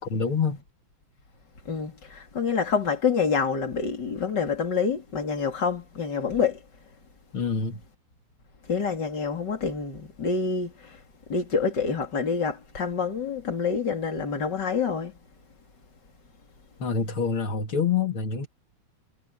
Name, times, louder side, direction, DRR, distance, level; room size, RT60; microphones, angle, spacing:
voice 1, 0.0-0.6 7.3-7.8 16.8-18.5, left 5 dB, 90° left, 3.6 m, -26 dB
voice 2, 1.7-6.6 8.7-10.9 11.3-15.1, left 5 dB, 55° left, 4.0 m, -27 dB
omnidirectional pair, 2.2 m